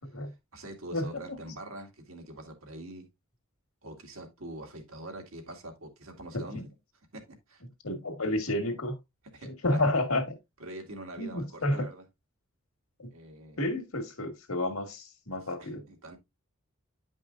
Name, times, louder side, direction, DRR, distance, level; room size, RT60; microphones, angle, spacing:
voice 1, 0.2-3.1 3.8-6.7 7.1-7.6 9.3-9.8 10.6-12.0 13.1-13.7 15.6-16.2, right 1 dB, 80° right, 2.2 m, -44 dB
voice 2, 0.9-1.4 6.3-6.6 7.8-8.9 9.4-10.2 11.2-11.9 13.0-13.1 13.6-15.8, left 1 dB, 90° left, 1.8 m, -30 dB
10.5 x 5.3 x 2.5 m
head